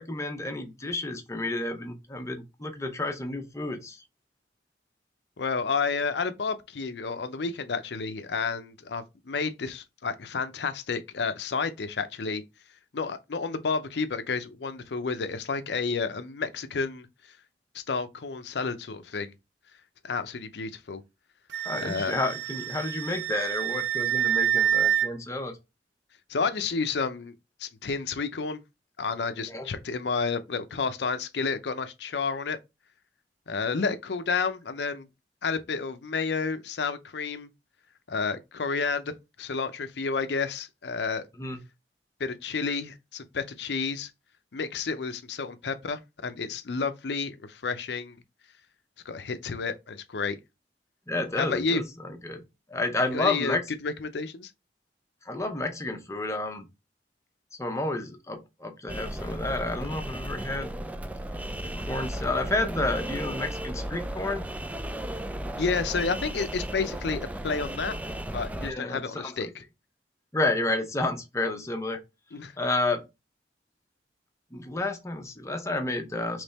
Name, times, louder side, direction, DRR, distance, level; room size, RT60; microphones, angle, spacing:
voice 1, 0.0-4.0 21.6-25.6 29.5-29.7 41.4-41.6 51.1-52.4 52.7-53.6 55.3-56.7 57.6-60.7 61.6-64.5 68.6-69.5 70.3-72.0 72.6-73.0 74.5-76.4, left 2 dB, 15° left, 0.7 m, -30 dB
voice 2, 5.4-12.4 12.9-17.1 17.7-19.3 20.0-21.0 21.8-22.2 26.3-28.6 29.0-32.6 33.5-35.1 35.4-37.5 38.1-39.1 39.4-41.3 42.2-44.1 44.5-48.2 49.1-50.4 51.4-51.8 53.1-54.5 65.6-68.0 68.3-69.5 72.3-72.5, left 4 dB, 70° left, 0.6 m, -30 dB
Wind instrument woodwind instrument, 21.5-25.1, right 10 dB, 75° right, 0.5 m, -27 dB
sound 1, 58.9-68.7, right 1 dB, 10° right, 0.3 m, -35 dB
3.4 x 3.2 x 4.1 m
head